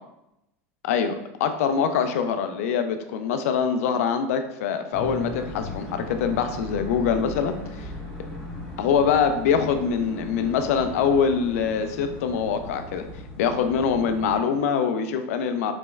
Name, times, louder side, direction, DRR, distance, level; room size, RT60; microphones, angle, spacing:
voice 1, 0.8-7.9 8.8-13.1 13.4-15.7, left 6 dB, 85° left, 8 dB, 0.4 m, -24 dB
sound 1, 4.9-14.4, left 1 dB, 10° left, 1.5 m, -38 dB
4.1 x 3.0 x 2.3 m, 0.88 s
supercardioid pair, 135°, 8 cm